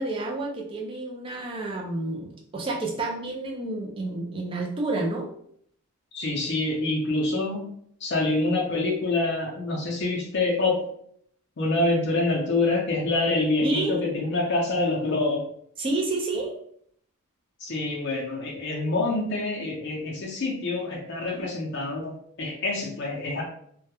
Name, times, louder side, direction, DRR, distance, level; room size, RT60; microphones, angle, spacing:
voice 1, 0.0-5.3 13.6-14.0 15.8-16.5 21.3-21.5, right 2 dB, 25° right, -1 dB, 0.3 m, -30 dB
voice 2, 6.1-7.7 8.0-10.8 11.6-15.4 17.6-23.4, left 2 dB, 50° left, -2 dB, 0.5 m, -26 dB
2.2 x 2.0 x 2.8 m, 0.67 s
head